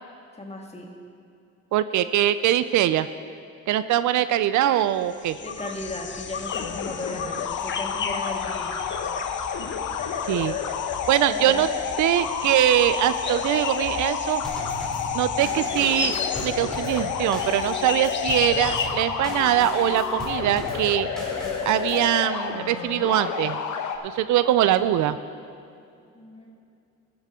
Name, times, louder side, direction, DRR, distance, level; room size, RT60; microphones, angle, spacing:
voice 1, 0.3-0.9 5.4-8.8 11.3-11.7 26.1-26.5, left 2 dB, 20° left, 1 dB, 1.7 m, -36 dB
voice 2, 1.7-3.1 3.7-5.4 10.3-10.5 11.1-11.7 12.0-14.4 15.1-21.1 21.7-23.6 24.0-25.2, right 12 dB, 75° right, 13 dB, 0.5 m, -22 dB
sound 1, 5.0-18.9, left 6 dB, 40° left, 0.7 m, -34 dB
sound 2, 6.5-24.0, left 7 dB, 80° left, 0.9 m, -30 dB
Drum kit / Snare drum / Bass drum, 14.4-22.1, left 1 dB, ahead, 2.9 m, -38 dB
14.0 x 8.8 x 3.6 m, 2.5 s
cardioid pair, 90°, 30 cm